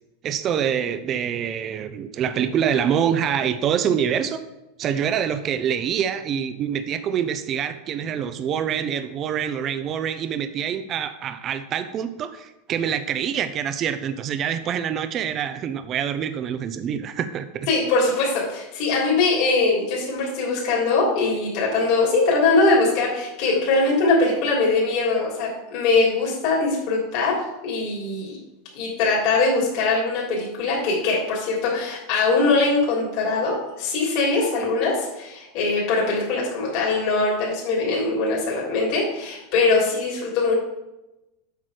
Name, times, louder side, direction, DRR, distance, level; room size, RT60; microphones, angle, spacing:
voice 1, 0.2-4.4 4.8-17.7, right 8 dB, 35° right, 10 dB, 0.7 m, -25 dB
voice 2, 17.7-28.4 28.7-40.5, left 3 dB, 55° left, -4 dB, 3.4 m, -22 dB
8.2 x 6.0 x 4.9 m, 0.95 s
supercardioid pair, 130°, 0 cm